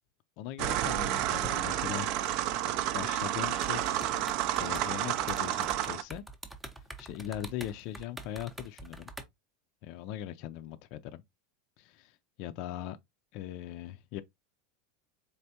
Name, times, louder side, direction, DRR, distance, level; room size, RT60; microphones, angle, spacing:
voice 1, 0.4-2.1 2.9-4.0 4.6-6.2 7.0-9.1 9.8-11.2 11.8-13.0 13.3-14.2, left 12 dB, 50° left, 0.4 m, -40 dB
sound 1, 0.6-6.0, right 12 dB, 50° right, 0.4 m, -30 dB
sound 2, 3.4-4.9 5.2-9.2, right 2 dB, 5° right, 0.6 m, -45 dB
4.2 x 3.3 x 2.7 m
supercardioid pair, 150°, 0 cm